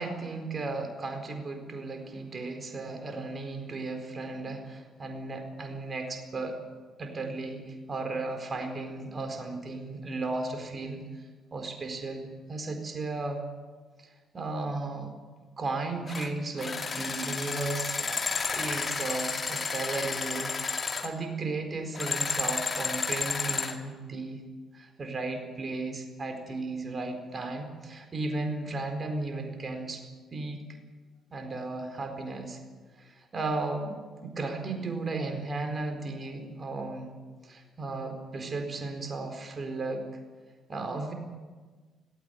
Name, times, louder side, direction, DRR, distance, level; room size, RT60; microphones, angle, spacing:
voice 1, 0.0-6.6 7.0-13.4 14.0-15.1 15.6-18.2 18.5-24.4 24.7-30.0 30.3-30.7 31.3-32.6 33.0-33.9 34.2-37.1 37.4-40.1 40.7-41.1, right 3 dB, 35° right, 4 dB, 4.4 m, -35 dB
sound 1, 16.1-16.3 16.6-21.1 21.9-23.8, left 4 dB, 40° left, 2.3 m, -31 dB
17.5 x 17.5 x 9.5 m, 1.4 s
figure-of-eight pair, 45°, 0 cm